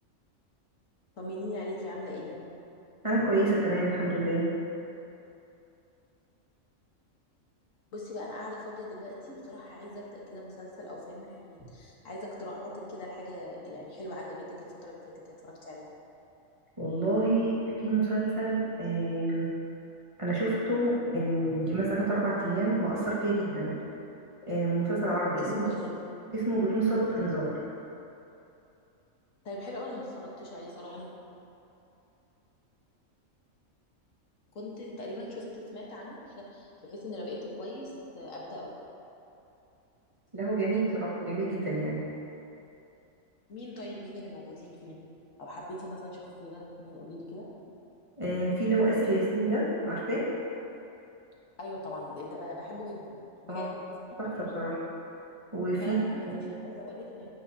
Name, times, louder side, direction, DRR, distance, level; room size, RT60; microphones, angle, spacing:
voice 1, 1.1-2.4 7.9-15.0 15.4-15.9 25.4-25.9 29.4-31.1 34.5-38.7 43.5-45.0 45.4-47.5 51.6-53.8 54.1-54.2 55.8-57.3, left 1 dB, 70° left, -4 dB, 1.7 m, -40 dB
voice 2, 3.0-4.5 16.8-19.5 20.2-23.8 24.5-25.4 26.3-27.6 40.3-42.1 48.2-50.3 53.5-53.7 54.2-54.8 55.5-56.0 56.4-56.5, right 2 dB, 25° right, -8 dB, 1.6 m, -28 dB
9.8 x 8.8 x 2.7 m, 2.8 s
omnidirectional pair, 1.4 m